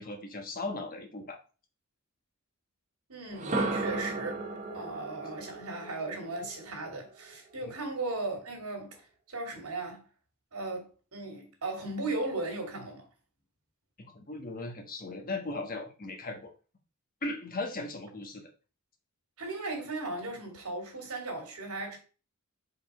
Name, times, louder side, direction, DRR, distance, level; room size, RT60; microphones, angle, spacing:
voice 1, 0.0-1.4 14.1-16.5 17.2-18.5, left 2 dB, 40° left, 1.3 m, -37 dB
voice 2, 3.1-4.5 4.7-9.0 9.3-10.0 10.5-13.0 19.4-22.0, right 2 dB, 80° right, 2.8 m, -37 dB
sound 1, 3.3-7.3, right 2 dB, 35° right, 1.2 m, -35 dB
5.3 x 4.6 x 4.9 m
head